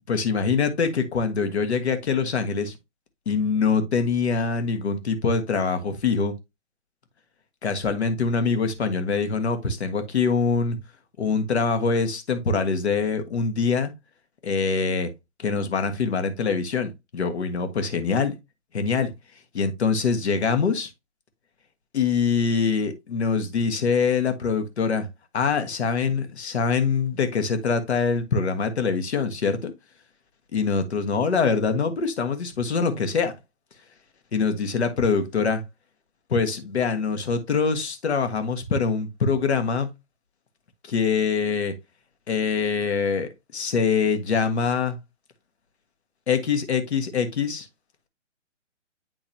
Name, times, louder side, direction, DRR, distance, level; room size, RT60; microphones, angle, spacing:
voice 1, 0.1-2.7 3.3-6.3 7.6-10.8 11.2-13.9 14.4-15.1 15.4-18.3 18.7-19.1 19.5-20.9 21.9-25.1 25.3-29.7 30.5-33.3 34.3-35.6 36.3-39.9 40.8-41.7 42.3-45.0 46.3-47.7, left 5 dB, 60° left, 1.4 m, -24 dB
9.1 x 3.8 x 2.7 m
hypercardioid pair, 155°, 37 cm